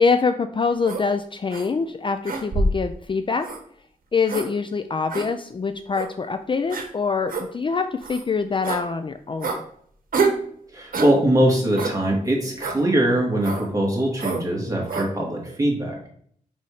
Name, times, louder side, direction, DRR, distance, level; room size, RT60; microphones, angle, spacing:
voice 1, 0.0-3.5 4.1-9.6, left 5 dB, 35° left, 9 dB, 0.4 m, -24 dB
sound 1, 0.9-1.0 1.5-1.7 2.3-2.8 3.4-3.6 4.3-4.5 5.1-5.3 5.9-6.1 6.7-6.9 7.3-7.5 8.0-8.2 8.6-8.8 9.4-9.6 10.1-10.4 10.9-11.1 11.8-12.0 12.6-12.8 13.4-13.7 14.2-14.4 14.9-15.1, right 3 dB, 80° right, 1.0 m, -26 dB
voice 2, 10.7-15.9, right 1 dB, 25° right, -2 dB, 2.1 m, -22 dB
5.4 x 4.1 x 4.8 m, 0.62 s
wide cardioid pair, 95°, 15 cm